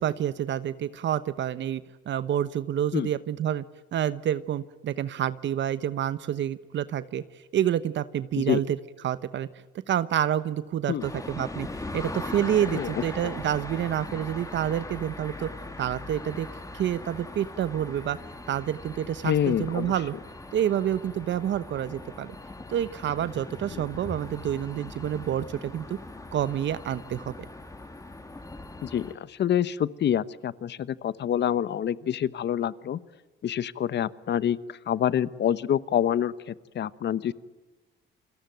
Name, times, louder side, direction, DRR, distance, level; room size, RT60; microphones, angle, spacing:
voice 1, 0.0-3.6 3.9-7.2 7.5-8.8 9.0-9.5 9.9-11.7 11.9-15.5 15.8-16.5 16.7-18.2 18.5-20.1 20.5-22.4 22.7-26.0 26.3-27.3, right 10 dB, 65° right, 15 dB, 1.1 m, -28 dB
sound 1, 11.0-29.1, left 2 dB, 15° left, 3.4 m, -40 dB
voice 2, 19.2-19.9 23.7-23.8 28.8-33.0 33.4-34.6 34.9-37.3, left 10 dB, 60° left, 17 dB, 1.1 m, -27 dB
29.0 x 22.5 x 9.2 m, 1.2 s
cardioid pair, 90°, 20 cm